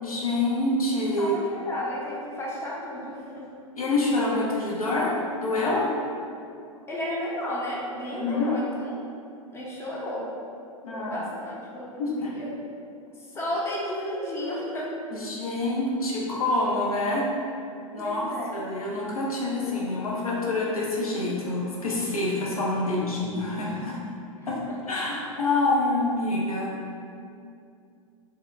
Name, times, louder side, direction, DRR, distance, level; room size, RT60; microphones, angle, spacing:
voice 1, 0.0-1.4 3.8-5.1 5.4-5.9 8.1-8.5 10.8-11.2 12.0-12.3 15.1-17.3 17.9-24.0 24.5-24.6 24.9-26.7, left 2 dB, 85° left, -4 dB, 0.5 m, -26 dB
voice 2, 1.2-3.4 6.9-9.0 9.5-10.3 10.9-12.5 13.4-14.9 18.0-18.5 24.4-24.5, left 1 dB, 15° left, -5 dB, 0.5 m, -33 dB
2.6 x 2.1 x 2.4 m, 2.5 s
figure-of-eight pair, 95°, 18 cm